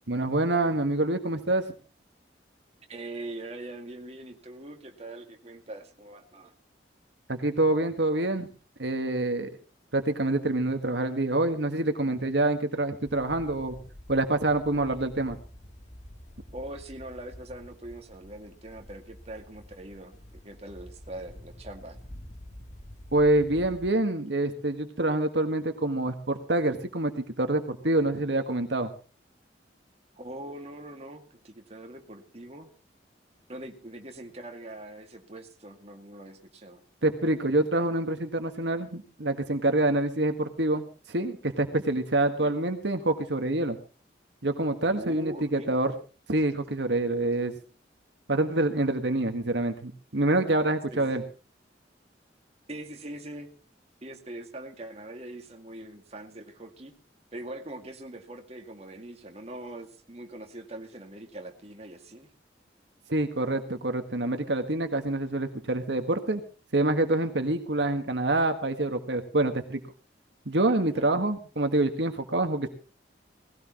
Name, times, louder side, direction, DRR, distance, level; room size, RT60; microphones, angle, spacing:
voice 1, 0.1-1.6 7.3-8.5 8.8-9.5 9.9-13.8 14.1-15.4 23.1-28.9 37.0-43.8 44.4-45.9 46.3-47.5 48.3-51.2 63.1-66.4 66.7-69.8 70.4-72.7, right 2 dB, 75° right, 7 dB, 1.7 m, -26 dB
voice 2, 2.9-6.5 16.5-22.0 30.2-32.7 33.5-36.8 42.4-42.6 44.9-45.8 50.9-51.2 52.7-53.5 54.0-56.9 57.3-62.3 70.9-71.1, right 1 dB, 35° right, 4 dB, 2.2 m, -42 dB
sound 1, 13.0-23.9, equal, 40° left, 3.1 m, -48 dB
19.0 x 17.0 x 3.0 m, 0.36 s
head